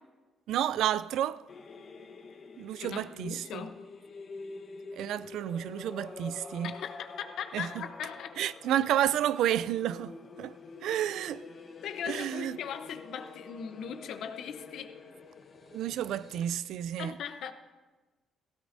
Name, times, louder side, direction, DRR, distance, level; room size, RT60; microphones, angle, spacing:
voice 1, 0.5-1.5 2.6-3.7 4.9-6.7 7.5-7.8 8.4-11.5 12.1-12.6 15.7-17.2, right 11 dB, 80° right, 0.3 m, -31 dB
sound 1, 1.5-16.4, left 4 dB, 50° left, 1.1 m, -48 dB
voice 2, 2.8-3.8 6.6-8.4 11.8-15.0 17.0-17.5, left 8 dB, 75° left, 0.8 m, -39 dB
17.5 x 15.5 x 2.6 m
cardioid pair, 90°, 0 cm